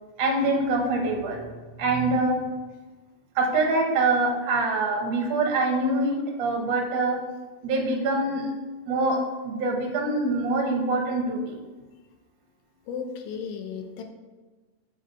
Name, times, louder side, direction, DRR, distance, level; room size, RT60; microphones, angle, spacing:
voice 1, 0.2-1.4 1.8-2.4 3.3-7.2 7.6-8.5 8.9-11.6, right 2 dB, 75° right, 1 dB, 1.1 m, -24 dB
voice 2, 12.9-14.0, left 6 dB, 75° left, 5 dB, 1.8 m, -34 dB
7.1 x 4.4 x 4.1 m, 1.3 s
omnidirectional pair, 3.8 m